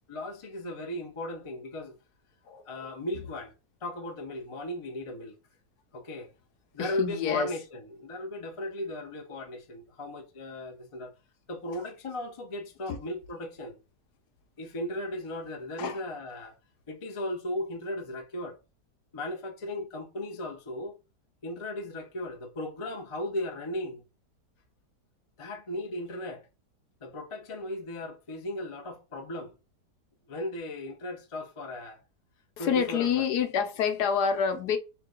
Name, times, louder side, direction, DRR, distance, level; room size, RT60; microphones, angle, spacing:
voice 1, 0.1-2.0 2.7-3.5 3.8-5.3 5.9-6.3 6.7-11.1 11.5-13.8 14.6-16.6 16.9-18.6 19.1-21.0 21.4-24.0 25.4-26.5 27.0-29.6 30.3-32.0 32.6-33.2, left 1 dB, 50° left, 0.4 m, -36 dB
voice 2, 2.5-2.9 6.8-7.5 12.9-13.0 15.8-16.0 32.6-34.8, left 7 dB, 70° left, 1.2 m, -28 dB
3.4 x 2.9 x 3.7 m
omnidirectional pair, 1.8 m